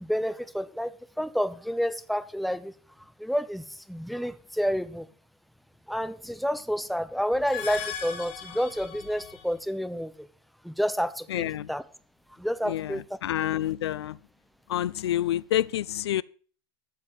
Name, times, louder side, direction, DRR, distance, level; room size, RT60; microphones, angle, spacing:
voice 1, 0.0-2.7 3.0-5.1 5.9-10.3 10.6-11.8 12.4-13.0, equal, ahead, 0.9 m, -29 dB
sound 1, 7.3-9.6, left 8 dB, 55° left, 2.2 m, -38 dB
voice 2, 11.3-11.7 12.6-14.2 14.7-16.2, left 12 dB, 75° left, 0.5 m, -28 dB
12.5 x 7.4 x 7.4 m
hypercardioid pair, 95°, 14 cm